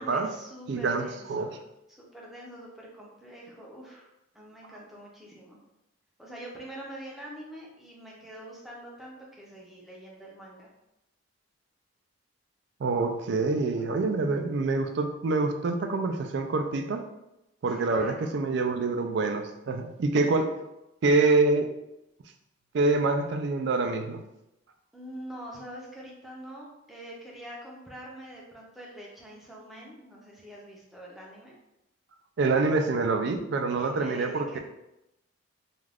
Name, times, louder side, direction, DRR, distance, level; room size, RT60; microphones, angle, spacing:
voice 1, 0.0-1.6 1.9-5.6 6.2-10.7 17.7-18.3 24.9-31.5 33.7-34.6, equal, ahead, -4 dB, 0.5 m, -45 dB
voice 2, 0.7-1.5 12.8-17.0 17.6-20.5 21.0-21.7 22.7-24.2 32.4-34.6, right 3 dB, 55° right, 5 dB, 0.3 m, -26 dB
2.4 x 2.3 x 3.3 m, 0.88 s
head